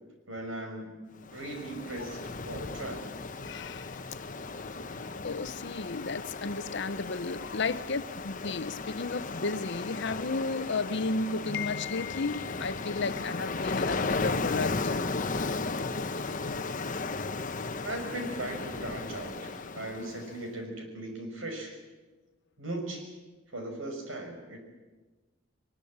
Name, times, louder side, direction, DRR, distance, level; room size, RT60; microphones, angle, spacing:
voice 1, 0.3-2.2 2.4-3.0 17.8-21.8 22.6-23.1 23.5-24.6, right 1 dB, 75° right, 5.7 m, -38 dB
Ocean, 1.2-20.4, left 3 dB, 40° left, 1.1 m, -35 dB
voice 2, 3.4-4.0 5.2-14.9, left 3 dB, 65° left, 0.9 m, -33 dB
22.0 x 21.0 x 8.7 m
head